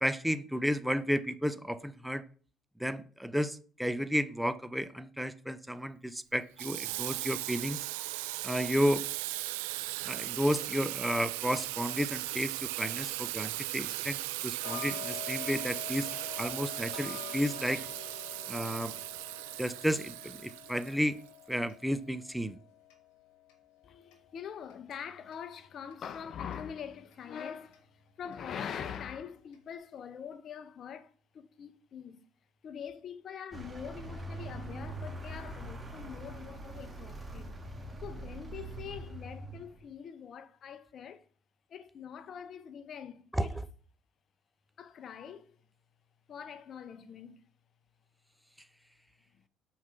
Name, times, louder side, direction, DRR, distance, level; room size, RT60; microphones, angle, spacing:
voice 1, 0.0-2.2 2.8-7.8 8.4-9.0 10.0-16.1 16.4-17.8 18.5-18.9 19.6-21.2 21.5-22.6 43.3-43.5, equal, 5° right, 0.5 m, -32 dB
Water tap faucet / Sink (filling or washing), 6.6-21.3, right 19 dB, 90° right, 0.3 m, -37 dB
Tick-tock, 14.6-25.5 25.9-26.0 26.5-26.6 27.1-27.2 27.7-27.8 28.3-28.4 28.9-29.0 29.5-29.6, left 12 dB, 80° left, 1.4 m, -47 dB
voice 2, 23.8-32.2 32.6-37.5 38.0-41.3 41.7-43.6 44.8-45.6 46.3-47.4, left 8 dB, 55° left, 0.8 m, -44 dB
Vehicle, 33.5-39.9, right 1 dB, 20° right, 1.6 m, -43 dB
5.7 x 4.6 x 5.7 m
supercardioid pair, 70°, 0 cm